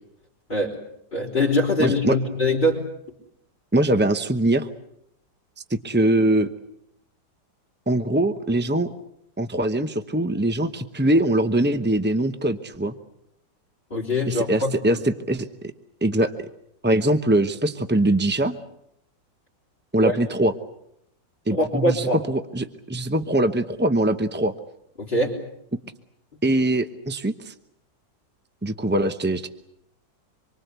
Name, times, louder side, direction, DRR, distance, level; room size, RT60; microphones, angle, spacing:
voice 1, 1.1-2.8 13.9-15.0 20.0-20.2 21.5-22.2 25.0-25.4, left 1 dB, 25° left, -5 dB, 4.1 m, -23 dB
voice 2, 1.8-2.2 3.7-4.7 5.7-6.5 7.9-8.9 9.4-12.9 14.3-15.5 16.0-16.3 16.8-18.6 19.9-20.5 21.5-24.5 26.4-27.5 28.6-29.5, right 1 dB, 10° right, 9 dB, 0.5 m, -22 dB
26.5 x 23.5 x 8.2 m, 0.76 s
omnidirectional pair, 2.0 m